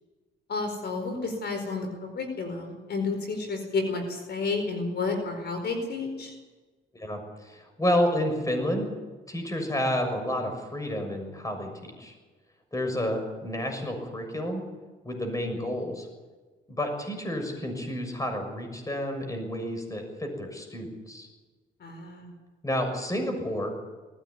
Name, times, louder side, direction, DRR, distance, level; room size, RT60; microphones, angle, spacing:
voice 1, 0.5-6.3 21.8-22.3, left 3 dB, 55° left, 5 dB, 4.7 m, -31 dB
voice 2, 6.9-8.9 9.3-12.1 12.7-14.6 15.0-16.1 16.7-21.3 22.6-23.7, left 1 dB, 15° left, 5 dB, 6.5 m, -30 dB
19.5 x 16.0 x 9.7 m, 1.3 s
cardioid pair, 90°, 20 cm